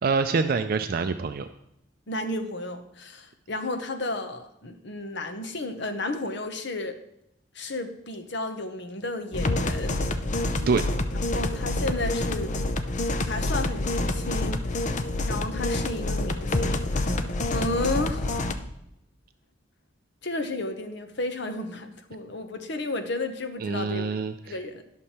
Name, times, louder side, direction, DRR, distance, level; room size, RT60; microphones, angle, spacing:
voice 1, 0.0-1.5 10.7-10.8 23.6-24.6, right 4 dB, 50° right, 9 dB, 0.4 m, -25 dB
voice 2, 2.1-6.9 7.5-10.0 11.3-12.6 13.2-14.8 15.3-18.4 20.2-24.1 24.4-24.8, left 2 dB, 65° left, 7 dB, 1.0 m, -33 dB
sound 1, 9.3-18.5, left 2 dB, 40° left, 0.6 m, -27 dB
11.0 x 6.4 x 4.3 m, 0.80 s
head